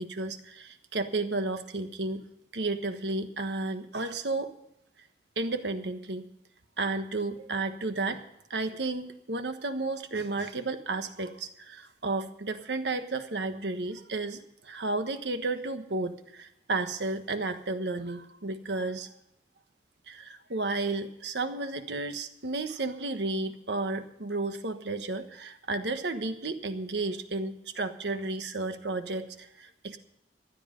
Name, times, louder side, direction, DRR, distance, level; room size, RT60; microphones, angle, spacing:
voice 1, 0.0-2.2 2.5-4.5 5.4-6.2 6.8-8.2 8.5-19.1 20.1-30.0, right 3 dB, 80° right, 9 dB, 1.3 m, -32 dB
15.5 x 11.0 x 5.2 m, 0.80 s
head